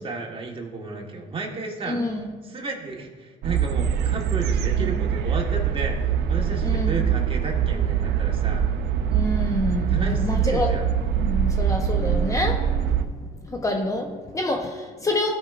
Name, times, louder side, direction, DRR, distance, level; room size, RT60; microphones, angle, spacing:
voice 1, 0.0-8.7 9.9-10.9 14.2-14.4, right 3 dB, 30° right, 0 dB, 1.5 m, -33 dB
voice 2, 1.9-2.2 4.8-4.9 6.6-6.9 9.1-10.7 11.2-12.8 13.5-14.1 14.3-15.3, left 1 dB, 20° left, 2 dB, 0.8 m, -27 dB
sound 1, 3.4-13.1, right 8 dB, 80° right, 0.7 m, -23 dB
16.0 x 5.4 x 2.5 m, 1.4 s
cardioid pair, 110°, 17 cm